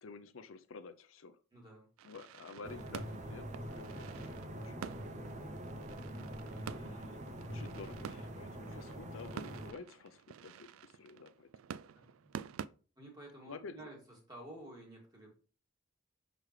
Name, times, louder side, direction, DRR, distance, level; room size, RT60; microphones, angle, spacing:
voice 1, 0.0-1.4 2.0-5.4 6.4-7.2 7.5-11.5 11.8-11.9 13.4-13.9, left 4 dB, 80° left, 10 dB, 0.6 m, -51 dB
voice 2, 1.5-1.9 11.9-12.1 13.0-14.0 14.3-15.3, right 1 dB, 20° right, -1 dB, 2.2 m, -51 dB
sound 1, 2.0-12.7, right 8 dB, 85° right, 0.3 m, -49 dB
sound 2, 2.6-9.7, equal, 35° right, 0.7 m, -44 dB
6.5 x 5.0 x 3.2 m, 0.37 s
head